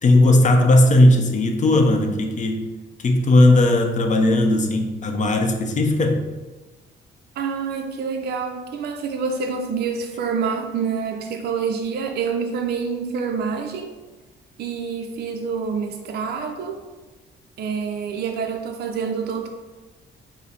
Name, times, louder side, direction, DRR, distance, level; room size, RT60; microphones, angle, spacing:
voice 1, 0.0-2.7 3.0-6.3, left 1 dB, 40° left, 4 dB, 0.6 m, -17 dB
voice 2, 7.4-13.9 14.6-16.8 17.6-19.5, right 5 dB, 55° right, 4 dB, 0.4 m, -27 dB
4.8 x 2.0 x 4.2 m, 1.2 s
cardioid pair, 90°, 20 cm